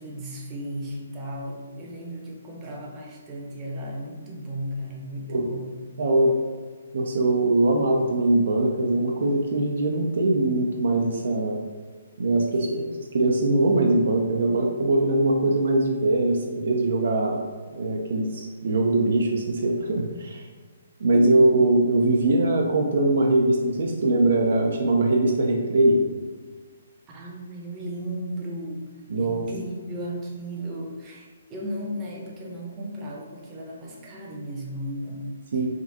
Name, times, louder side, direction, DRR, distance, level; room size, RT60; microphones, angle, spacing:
voice 1, 0.0-5.8 12.5-12.9 21.1-21.4 27.1-28.9 29.2-35.6, equal, 25° right, -2 dB, 0.6 m, -35 dB
voice 2, 6.0-6.3 6.9-11.6 12.2-17.4 17.7-20.5 21.0-26.0 29.1-29.4 35.5-35.7, right 2 dB, 65° right, 1 dB, 0.3 m, -22 dB
3.5 x 2.3 x 2.6 m, 1.5 s
figure-of-eight pair, 135°, 0 cm